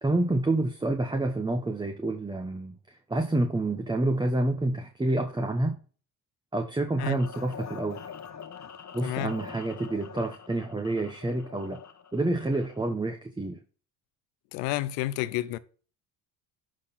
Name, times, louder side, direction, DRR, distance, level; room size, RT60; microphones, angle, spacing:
voice 1, 0.0-5.8 6.5-8.0 8.9-11.8 12.1-13.6, right 2 dB, 10° right, 1.0 m, -28 dB
sound 1, 7.0-12.9, left 7 dB, 40° left, 1.4 m, -44 dB
voice 2, 9.0-9.3 14.5-15.6, left 15 dB, 85° left, 0.7 m, -30 dB
11.5 x 4.0 x 4.1 m
supercardioid pair, 80°, 42 cm